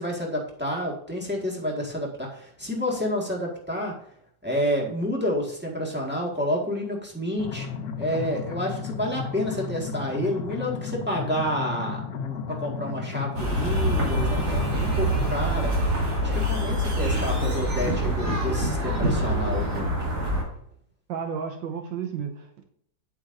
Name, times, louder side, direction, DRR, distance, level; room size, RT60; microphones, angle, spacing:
voice 1, 0.0-3.9 4.4-7.7 7.9-15.7 16.2-20.0, equal, 5° right, -2 dB, 1.6 m, -29 dB
sound 1, 7.4-15.4, left 6 dB, 65° left, 1.2 m, -34 dB
sound 2, 13.3-20.4, equal, 55° right, 2.9 m, -25 dB
voice 2, 21.1-22.6, right 7 dB, 80° right, 4 dB, 1.6 m, -32 dB
8.6 x 8.2 x 2.6 m, 0.65 s
omnidirectional pair, 2.0 m